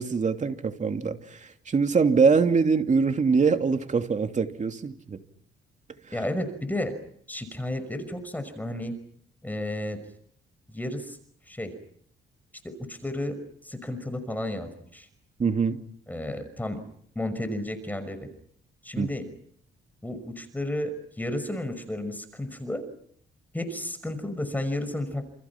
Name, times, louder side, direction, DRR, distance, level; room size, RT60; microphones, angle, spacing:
voice 1, 0.0-5.2 15.4-15.8 19.0-19.1, right 5 dB, 35° right, 6 dB, 2.8 m, -23 dB
voice 2, 6.1-7.0 7.3-8.9 9.4-10.0 10.7-11.2 11.5-11.7 12.6-13.4 13.6-15.1 16.1-16.8 17.2-18.3 18.8-19.2 20.0-22.8 23.5-25.2, left 1 dB, 10° left, 9 dB, 5.8 m, -32 dB
30.0 x 28.5 x 6.0 m, 0.65 s
cardioid pair, 90°, 20 cm